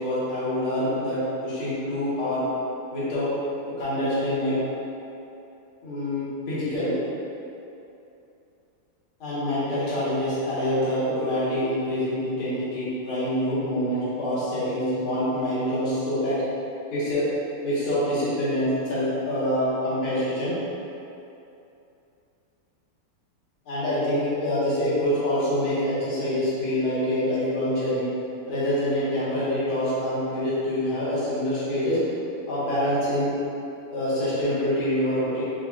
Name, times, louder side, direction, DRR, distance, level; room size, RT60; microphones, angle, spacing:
voice 1, 0.0-2.4 2.9-3.3 3.8-4.6 5.8-6.9 9.2-16.4 16.9-17.2 17.6-20.5 23.7-28.1 28.5-32.0 32.5-33.3 33.9-35.4, left 1 dB, 70° left, -11 dB, 2.2 m, -26 dB
5.0 x 3.8 x 2.4 m, 2.8 s
omnidirectional pair, 2.4 m